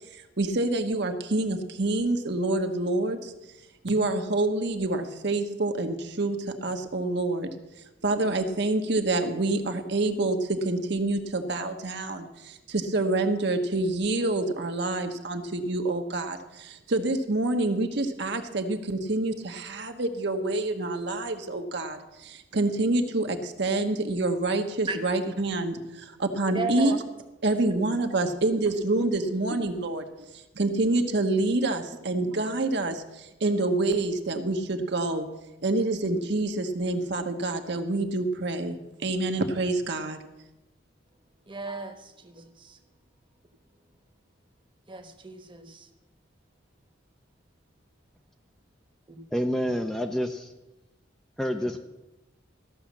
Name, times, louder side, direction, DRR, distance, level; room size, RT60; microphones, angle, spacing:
voice 1, 0.1-3.3 3.8-7.5 8.0-27.0 27.4-30.0 30.6-35.3 35.6-40.2, right 2 dB, 60° right, 1.0 m, -27 dB
voice 2, 26.4-26.9 31.9-32.0 41.5-42.8 44.9-45.9 49.1-49.2, right 2 dB, 25° right, 1.1 m, -35 dB
voice 3, 49.3-50.5 51.4-51.8, equal, 5° left, 0.5 m, -28 dB
13.5 x 6.4 x 7.2 m
head